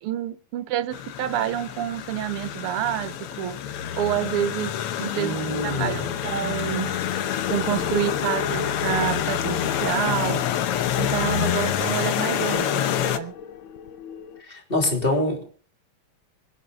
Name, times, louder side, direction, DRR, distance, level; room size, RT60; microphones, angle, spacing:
voice 1, 0.0-7.0 7.5-10.5 11.0-13.3, right 12 dB, 85° right, 1.8 m, -28 dB
sound 1, 0.9-13.2, left 10 dB, 90° left, 1.9 m, -27 dB
voice 2, 5.1-6.1 14.4-15.4, left 1 dB, 25° left, 3.6 m, -25 dB
sound 2, 5.5-14.4, left 6 dB, 70° left, 1.6 m, -37 dB
25.0 x 9.6 x 4.1 m
omnidirectional pair, 2.4 m